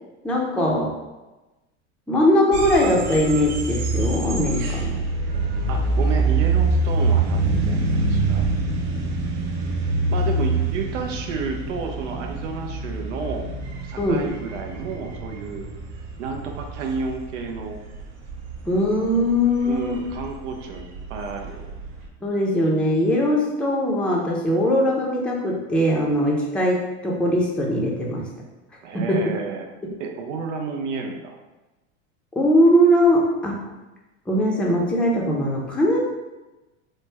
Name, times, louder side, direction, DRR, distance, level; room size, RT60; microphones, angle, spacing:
voice 1, 0.2-0.9 2.1-5.0 14.0-14.3 18.7-20.0 22.2-28.2 28.9-29.3 29.8-29.9 32.4-33.7 34.3-36.0, equal, 5° left, -3 dB, 0.5 m, -20 dB
sound 1, 2.5-22.1, right 3 dB, 45° right, 0.6 m, -25 dB
voice 2, 5.7-8.4 10.1-13.5 13.8-15.7 16.2-17.8 19.6-21.7 28.8-29.7 30.0-31.4, right 4 dB, 90° right, 3 dB, 0.6 m, -31 dB
3.1 x 2.1 x 3.3 m, 1.1 s
hypercardioid pair, 100°, 36 cm